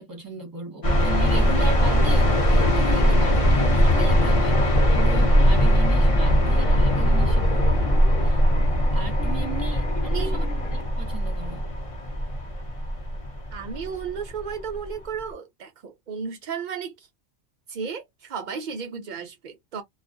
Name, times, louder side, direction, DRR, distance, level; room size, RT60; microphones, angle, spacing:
voice 1, 0.0-7.9 8.2-8.4 8.9-10.4 11.0-11.7, right 4 dB, 20° right, 0.9 m, -36 dB
sound 1, 0.8-14.8, equal, 35° left, 0.7 m, -20 dB
sound 2, 0.9-10.8, left 3 dB, 75° left, 1.1 m, -39 dB
voice 2, 13.5-17.1 17.7-19.8, right 6 dB, 85° right, 0.4 m, -34 dB
2.3 x 2.2 x 2.5 m
omnidirectional pair, 1.4 m